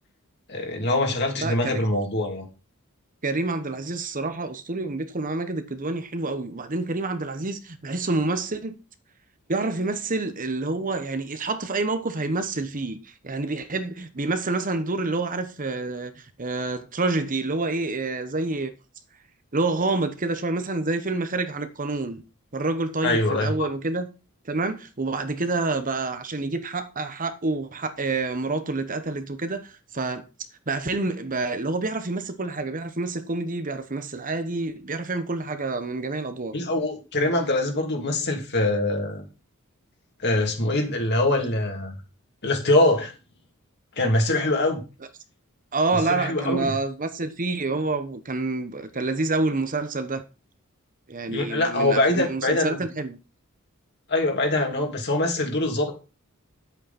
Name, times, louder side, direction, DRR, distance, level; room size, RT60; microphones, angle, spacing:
voice 1, 0.5-2.5 23.0-23.5 36.5-39.3 40.2-41.9 42.4-43.1 44.0-44.8 46.1-46.7 51.3-52.8 54.1-56.0, left 2 dB, 50° left, 2.9 m, -23 dB
voice 2, 1.4-1.9 3.2-8.8 9.5-18.7 19.5-22.2 22.5-24.1 24.4-30.3 30.7-36.5 45.7-50.2 51.1-53.2, right 3 dB, 40° right, 1.1 m, -28 dB
10.0 x 8.1 x 4.3 m
head